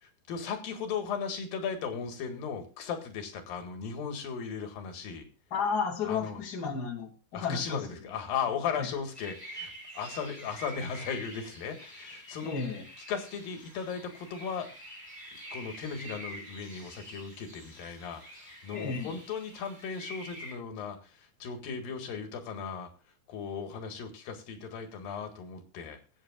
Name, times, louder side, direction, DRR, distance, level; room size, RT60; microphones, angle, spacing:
voice 1, 0.0-5.3 6.0-6.4 7.3-12.6 13.1-14.7 15.3-22.9 23.3-26.0, left 6 dB, 90° left, 6 dB, 3.6 m, -37 dB
voice 2, 5.5-8.1 8.8-8.9 12.4-12.8 18.7-19.2, left 5 dB, 30° left, 1 dB, 2.5 m, -33 dB
sound 1, 9.1-20.5, right 1 dB, 5° left, 5.9 m, -47 dB
21.0 x 8.8 x 2.4 m, 0.33 s
omnidirectional pair, 4.0 m